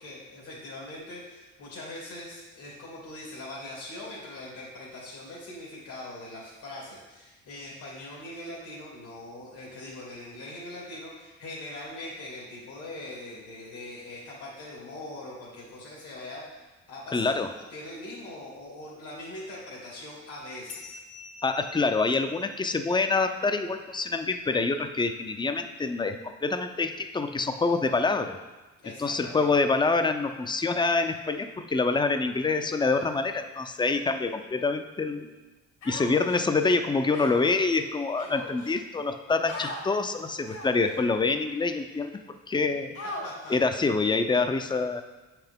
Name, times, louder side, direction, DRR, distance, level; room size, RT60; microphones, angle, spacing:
voice 1, 0.0-21.0 28.8-29.5 42.5-42.6 43.2-44.0, left 1 dB, 85° left, -6 dB, 2.5 m, -42 dB
voice 2, 17.1-17.5 21.4-28.4 29.0-35.3 35.9-43.0 43.5-45.0, left 3 dB, 15° left, 8 dB, 0.5 m, -26 dB
sound 1, 20.7-25.6, left 3 dB, 50° left, 0.9 m, -49 dB
Human voice, 35.8-36.4 37.1-37.6 38.2-38.8 39.5-39.8 40.5-40.9 41.6-41.7 43.0-43.6, left 2 dB, 70° left, 1.7 m, -38 dB
7.4 x 5.8 x 3.6 m, 1.2 s
cardioid pair, 90°, 30 cm